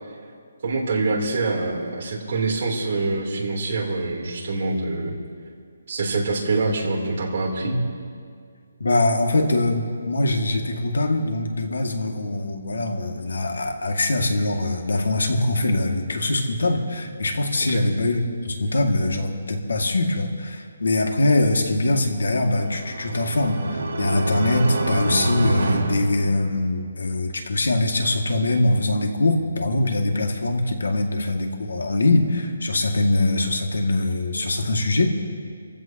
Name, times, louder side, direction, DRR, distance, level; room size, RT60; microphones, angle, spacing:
voice 1, 0.6-5.1 5.9-7.7 17.7-17.8, right 3 dB, 40° right, -4 dB, 3.6 m, -25 dB
voice 2, 8.8-35.1, left 2 dB, 85° left, 3 dB, 2.3 m, -23 dB
sound 1, 22.3-26.9, right 2 dB, 65° right, 3.3 m, -26 dB
27.5 x 15.5 x 3.0 m, 2.2 s
hypercardioid pair, 175°, 0 cm